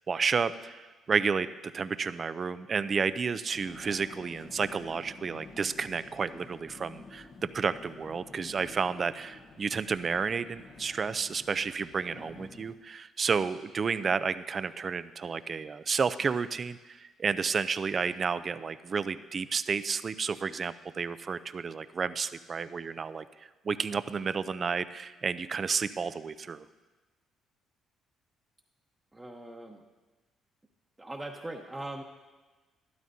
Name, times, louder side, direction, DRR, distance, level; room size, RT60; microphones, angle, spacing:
voice 1, 0.1-1.5 1.7-7.3 7.5-23.3 23.6-26.6, right 5 dB, 45° right, 14 dB, 0.4 m, -31 dB
Vehicle, 3.5-12.8, left 3 dB, 60° left, 1.0 m, -50 dB
voice 2, 29.1-29.8 31.0-32.0, right 1 dB, 15° right, 0 dB, 0.9 m, -40 dB
12.5 x 12.0 x 2.7 m, 1.2 s
supercardioid pair, 75°, 0 cm